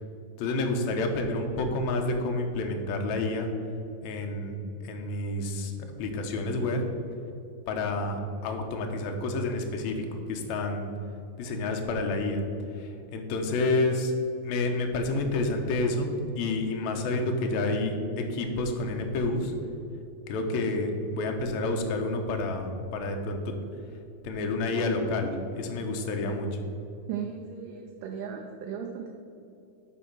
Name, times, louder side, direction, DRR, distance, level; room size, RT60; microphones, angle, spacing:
voice 1, 0.4-3.5 4.0-4.6 4.8-6.8 7.7-8.2 8.4-10.9 11.4-12.4 12.7-14.1 14.4-19.5 20.3-23.5 24.2-26.6, left 2 dB, 75° left, 3 dB, 1.7 m, -29 dB
voice 2, 27.1-29.1, right 7 dB, 75° right, 2 dB, 2.1 m, -36 dB
10.0 x 4.4 x 6.0 m, 2.6 s
omnidirectional pair, 4.3 m